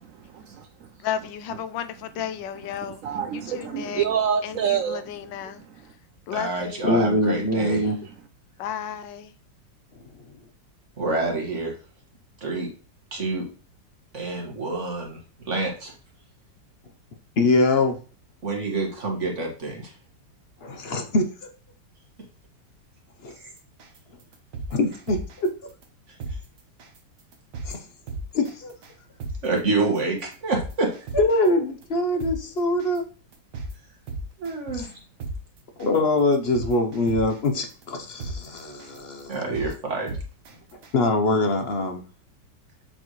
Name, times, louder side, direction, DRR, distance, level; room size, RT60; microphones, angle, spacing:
voice 1, 0.3-0.9 2.8-5.0, right 8 dB, 85° right, 0.7 m, -27 dB
voice 2, 1.0-3.0 3.3-4.0 4.4-5.6 6.3-6.9 8.6-9.3, left 9 dB, 85° left, 1.4 m, -33 dB
voice 3, 6.3-7.8 11.0-11.7 12.4-12.7 13.1-13.4 14.1-15.2 15.5-15.9 18.4-19.9 23.4-23.5 26.1-26.4 29.4-30.9 34.4-34.9 39.3-40.2 40.5-40.6, right 3 dB, 40° right, 1.9 m, -27 dB
voice 4, 6.8-8.0 17.4-18.0 20.6-21.3 23.2-23.3 24.7-25.5 27.6-27.8 28.3-28.7 31.1-33.0 34.7-34.9 35.8-39.4 40.9-42.0, left 2 dB, 55° left, 0.7 m, -23 dB
sound 1, 23.8-24.0 24.3-25.5 25.8-25.9 26.2-26.4 26.8-27.0 27.3-27.7 28.1-28.5 28.8-28.9 29.2-29.4 29.8-30.0 30.3-31.5 31.8-31.9 32.2-32.4 32.8-33.0 33.3-33.7 34.1-34.9 35.2-35.4 35.8-36.0 36.3-37.5 37.8-37.9 38.2-38.4 38.8-39.0 39.3-39.7 40.1-40.5 40.8-40.9, right 3 dB, 70° right, 1.6 m, -34 dB
7.6 x 4.3 x 3.1 m
omnidirectional pair, 2.0 m